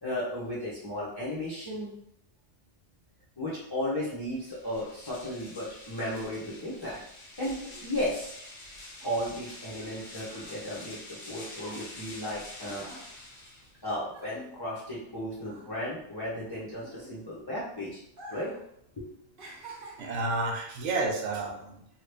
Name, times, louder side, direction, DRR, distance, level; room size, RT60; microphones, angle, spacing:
voice 1, 0.0-1.9 3.4-7.0 7.4-8.4 9.0-12.9 13.8-18.0 18.3-18.5 19.0-19.1, left 1 dB, 25° left, -9 dB, 0.8 m, -34 dB
sound 1, 4.3-14.0, left 1 dB, 65° left, 1.1 m, -47 dB
sound 2, 10.3-15.1 15.4-17.6 18.1-18.7 18.9-20.4 21.1-21.3, right 1 dB, 50° right, 1.0 m, -48 dB
voice 2, 20.0-22.0, right 3 dB, 80° right, 2 dB, 0.9 m, -31 dB
3.1 x 2.3 x 3.3 m, 0.74 s
omnidirectional pair, 1.2 m